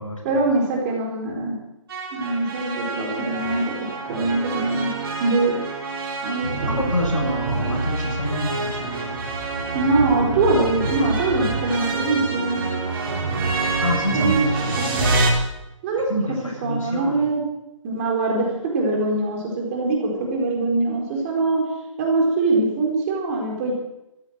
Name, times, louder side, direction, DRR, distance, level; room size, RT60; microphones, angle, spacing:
voice 1, 0.2-1.6 2.1-3.8 4.1-4.9 5.2-5.5 6.2-6.8 9.7-12.7 14.1-14.5 14.9-15.0 15.8-16.1 16.6-17.4 17.8-18.5 18.7-21.6 22.0-23.7, right 3 dB, 25° right, 0 dB, 4.5 m, -23 dB
sound 1, 1.9-15.3, right 3 dB, 45° right, 3.6 m, -26 dB
voice 2, 6.6-9.2 13.8-15.0 16.1-17.3, left 1 dB, 75° left, -1 dB, 7.7 m, -27 dB
14.5 x 12.0 x 7.7 m, 0.90 s
figure-of-eight pair, 150°, 17 cm